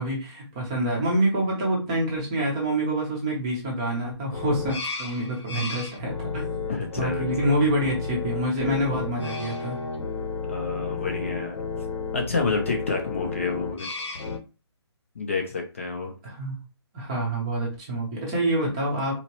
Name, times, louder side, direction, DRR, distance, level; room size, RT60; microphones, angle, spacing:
voice 1, 0.0-6.6 7.0-9.8 16.2-16.6 16.9-19.1, right 1 dB, 10° right, -2 dB, 0.7 m, -26 dB
sound 1, 4.3-14.4, left 4 dB, 85° left, 1.1 m, -32 dB
voice 2, 6.7-7.6 10.5-11.6 12.1-13.9 15.2-16.1, left 4 dB, 30° left, 2 dB, 0.5 m, -29 dB
4.1 x 2.9 x 2.9 m, 0.32 s
hypercardioid pair, 175°, 14 cm